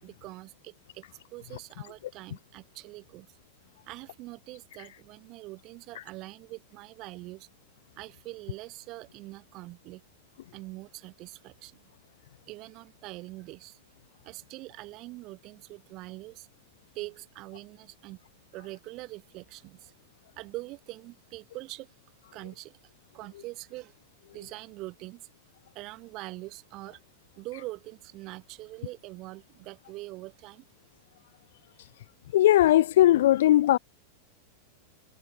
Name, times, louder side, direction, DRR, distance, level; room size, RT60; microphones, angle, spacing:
voice 1, 0.0-3.3 3.9-7.5 8.0-10.0 10.5-11.9 12.4-13.8 14.2-16.5 16.9-18.2 18.5-19.9 20.4-21.9 22.3-24.0 24.3-25.3 25.7-27.0 27.4-30.6, right 20 dB, 40° right, 5.7 m, -43 dB
voice 2, 32.3-33.8, left 13 dB, 55° left, 1.0 m, -19 dB
figure-of-eight pair, 90°, 0 cm